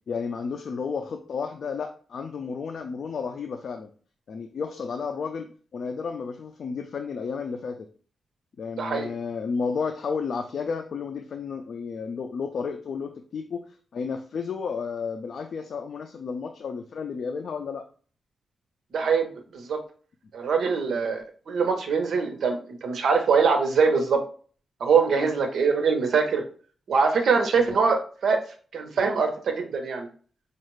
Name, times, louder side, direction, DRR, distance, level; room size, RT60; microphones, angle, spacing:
voice 1, 0.1-3.9 4.3-5.5 5.7-7.9 8.6-17.9 25.2-25.4 27.6-27.8, left 5 dB, 65° left, 5 dB, 0.4 m, -32 dB
voice 2, 8.8-9.1 18.9-19.8 20.3-24.2 24.8-26.4 26.9-28.4 28.7-30.1, right 5 dB, 75° right, 4 dB, 0.8 m, -23 dB
5.3 x 2.4 x 3.1 m, 0.42 s
wide cardioid pair, 125°, 0 cm